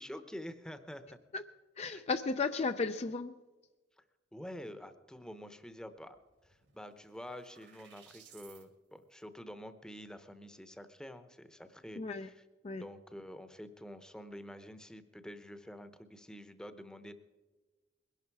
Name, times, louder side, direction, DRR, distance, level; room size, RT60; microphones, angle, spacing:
voice 1, 0.0-1.2 1.9-2.0 4.0-4.1 4.3-6.2 6.4-12.4 12.8-17.1, equal, 5° left, 10 dB, 0.8 m, -48 dB
voice 2, 1.8-3.3 12.0-12.3 12.6-12.8, left 4 dB, 35° left, 9 dB, 0.4 m, -34 dB
sound 1, 6.1-8.7, right 8 dB, 70° right, 2.1 m, -60 dB
21.0 x 11.5 x 4.7 m, 1.2 s
head